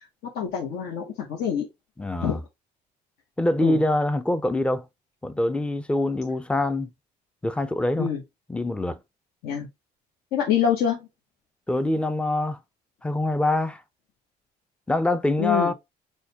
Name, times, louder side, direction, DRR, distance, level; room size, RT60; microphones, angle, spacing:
voice 1, 0.3-1.7 2.2-2.4 3.6-3.8 8.0-8.2 9.4-9.7 10.3-11.1 15.4-15.7, left 8 dB, 75° left, 1.0 m, -25 dB
voice 2, 2.0-2.4 3.4-4.9 5.2-6.9 7.4-8.1 8.5-9.0 11.7-12.6 13.0-13.8 14.9-15.7, left 1 dB, 5° left, 0.4 m, -24 dB
6.3 x 2.2 x 2.7 m
cardioid pair, 110°, 17 cm